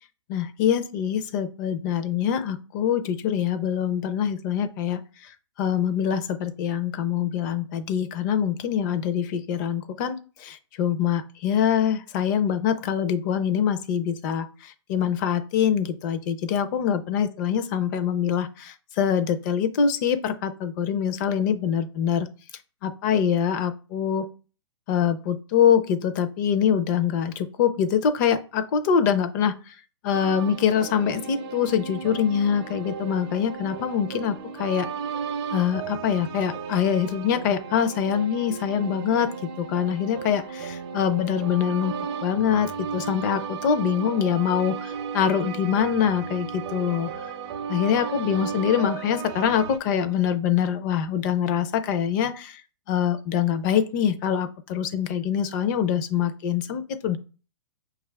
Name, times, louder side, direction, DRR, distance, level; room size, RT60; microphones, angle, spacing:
voice 1, 0.3-5.3 5.6-22.3 22.8-24.2 24.9-29.7 30.0-34.9 35.5-42.0 42.2-47.1 47.7-52.6 52.9-57.2, left 8 dB, 40° left, 10 dB, 0.5 m, -24 dB
sound 1, 30.1-49.8, right 6 dB, 55° right, 0.6 m, -35 dB
5.9 x 2.4 x 3.3 m, 0.35 s
hypercardioid pair, 130°, 16 cm